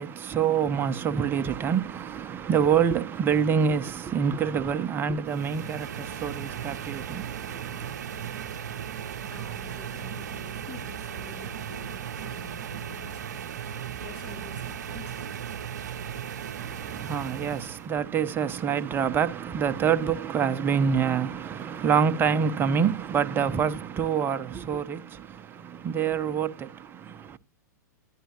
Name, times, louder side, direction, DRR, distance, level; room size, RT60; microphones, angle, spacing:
voice 1, 0.0-7.9 16.6-27.4, right 7 dB, 20° right, 0.7 m, -26 dB
sound 1, 5.3-17.9, right 8 dB, 65° right, 0.6 m, -36 dB
voice 2, 9.3-13.6 14.0-15.4, left 4 dB, 40° left, 1.3 m, -47 dB
11.5 x 10.0 x 2.8 m
figure-of-eight pair, 100°, 10 cm